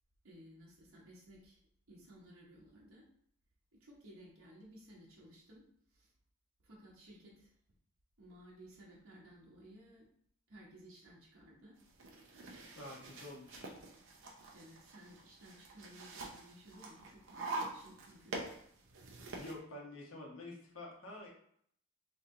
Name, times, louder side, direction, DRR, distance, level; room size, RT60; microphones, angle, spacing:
voice 1, 0.2-1.6 1.9-3.0 3.7-5.6 5.9-6.1 6.6-7.5 8.2-10.0 10.5-11.7 14.5-18.4, right 1 dB, 85° right, -4 dB, 1.1 m, -57 dB
sound 1, 11.8-19.5, right 2 dB, 65° right, 0.6 m, -46 dB
voice 2, 12.8-13.7 19.4-21.3, left 2 dB, 80° left, -3 dB, 1.1 m, -48 dB
3.2 x 2.8 x 3.7 m, 0.65 s
head